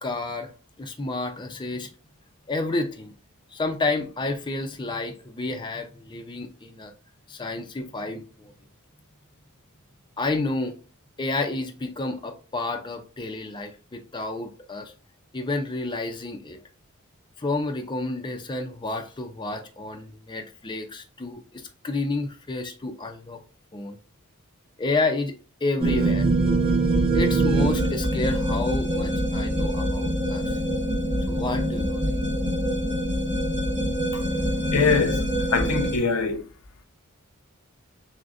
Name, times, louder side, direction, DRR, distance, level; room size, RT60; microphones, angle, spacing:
voice 1, 0.0-0.5 0.8-1.9 2.5-3.1 3.5-6.9 7.3-8.5 10.2-10.7 11.2-14.9 15.3-16.6 17.4-21.4 21.8-23.4 23.7-24.0 24.8-26.3 27.1-30.5 31.3-32.0, left 2 dB, 20° left, 0.5 m, -30 dB
sound 1, 25.8-36.0, right 1 dB, 25° right, 0.8 m, -24 dB
voice 2, 34.7-36.4, left 5 dB, 80° left, 0.7 m, -23 dB
6.1 x 2.1 x 2.4 m
head